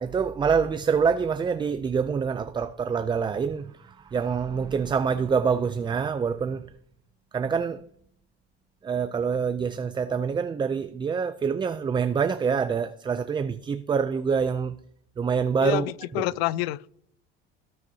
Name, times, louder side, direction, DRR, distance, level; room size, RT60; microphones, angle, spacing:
voice 1, 0.0-6.7 7.3-7.8 8.8-14.8 15.2-15.9 16.1-16.2, right 6 dB, 15° right, 0.4 m, -26 dB
voice 2, 15.6-16.9, left 17 dB, 90° left, 0.5 m, -28 dB
18.0 x 6.5 x 2.8 m
supercardioid pair, 110°, 30 cm